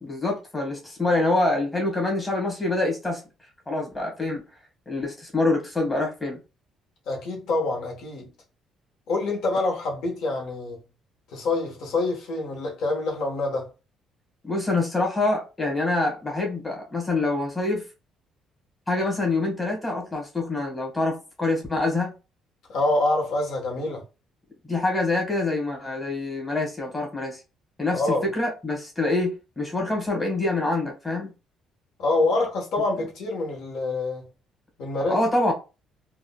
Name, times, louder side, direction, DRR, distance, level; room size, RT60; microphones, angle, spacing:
voice 1, 0.0-3.2 3.7-4.4 4.9-6.4 14.4-17.8 18.9-22.1 24.6-27.4 27.8-31.3 35.1-35.5, left 2 dB, 15° left, 1.4 m, -25 dB
voice 2, 7.1-8.3 9.1-10.8 11.3-13.7 22.7-24.0 27.9-28.3 32.0-34.3 34.8-35.2, left 2 dB, 75° left, 1.1 m, -26 dB
3.7 x 2.3 x 2.2 m
cardioid pair, 110°, 0 cm